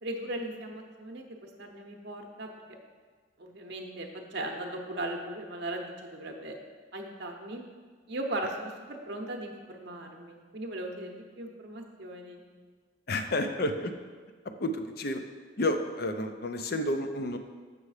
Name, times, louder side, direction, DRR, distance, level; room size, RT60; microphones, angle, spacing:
voice 1, 0.0-2.8 3.4-6.6 6.9-7.6 8.1-12.4, right 1 dB, 55° right, 2 dB, 0.8 m, -38 dB
voice 2, 13.1-13.9 14.6-15.2 15.6-17.4, left 1 dB, 50° left, 7 dB, 0.5 m, -30 dB
6.9 x 6.4 x 4.9 m, 1.5 s
head